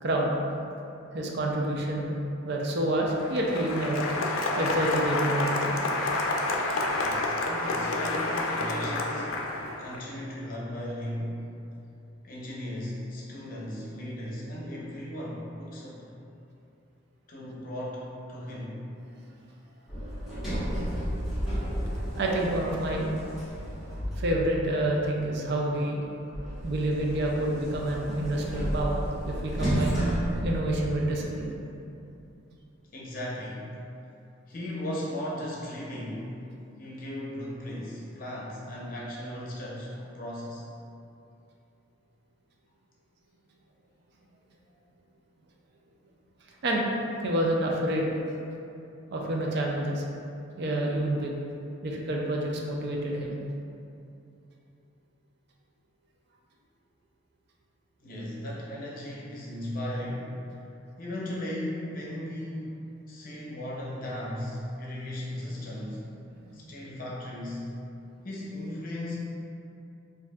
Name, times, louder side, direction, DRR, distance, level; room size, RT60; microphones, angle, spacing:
voice 1, 0.0-0.3 1.1-2.2 2.4-4.0 4.6-5.8 22.2-23.1 24.2-26.0 26.6-30.0 30.4-31.6 46.6-46.9 47.2-48.2 49.1-50.0 50.6-51.3 51.8-53.4 66.4-66.5, right 1 dB, 55° right, -1 dB, 0.4 m, -28 dB
Applause, 3.1-10.0, left 2 dB, 85° left, 0.4 m, -29 dB
voice 2, 6.9-9.3 9.8-11.4 12.2-16.1 17.3-18.0 18.3-18.7 32.9-33.7 34.5-36.3 36.8-40.6 58.0-60.3 61.0-62.8 63.1-66.0 66.5-67.7 68.2-69.2, left 1 dB, 45° left, -5 dB, 0.7 m, -36 dB
Sliding door, 19.9-24.7 26.3-31.3, equal, ahead, 1.1 m, -32 dB
4.5 x 2.6 x 2.3 m, 2.7 s
head